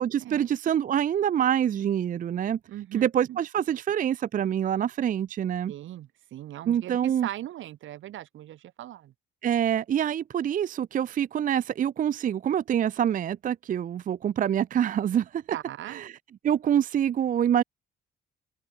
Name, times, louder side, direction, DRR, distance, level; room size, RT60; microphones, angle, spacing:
voice 1, 0.0-2.6 2.9-5.7 6.7-7.3 9.4-15.4 15.9-16.1 16.4-17.6, right 9 dB, 45° right, 0.4 m, -26 dB
voice 2, 2.7-3.4 5.7-9.1 15.5-16.0, right 13 dB, 80° right, 2.1 m, -39 dB
cardioid pair, 90°, 20 cm